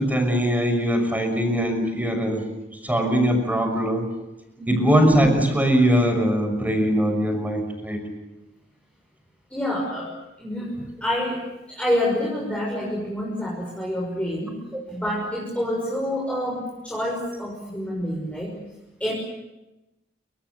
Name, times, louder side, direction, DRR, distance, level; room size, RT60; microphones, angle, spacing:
voice 1, 0.0-2.5 2.8-4.1 4.7-8.0 14.7-14.8, equal, 10° right, 6 dB, 5.9 m, -21 dB
voice 2, 4.6-4.9 9.5-10.1 10.4-14.6 14.9-18.6 19.0-19.1, left 1 dB, 5° left, -3 dB, 6.4 m, -27 dB
28.5 x 25.0 x 7.0 m, 0.95 s
head